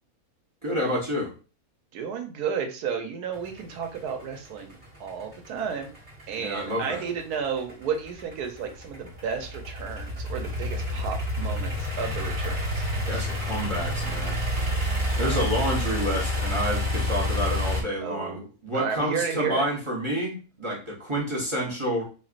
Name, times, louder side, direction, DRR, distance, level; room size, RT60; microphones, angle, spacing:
voice 1, 0.6-1.3 6.4-7.1 13.1-14.4 14.7-22.0, equal, 25° right, -4 dB, 0.9 m, -29 dB
voice 2, 1.9-5.9 6.3-12.6 12.9-13.4 18.0-18.5 18.7-19.6, right 6 dB, 85° right, 5 dB, 1.2 m, -32 dB
sound 1, 3.3-17.8, left 1 dB, 40° right, 1.4 m, -29 dB
4.4 x 2.7 x 2.4 m, 0.35 s
omnidirectional pair, 1.6 m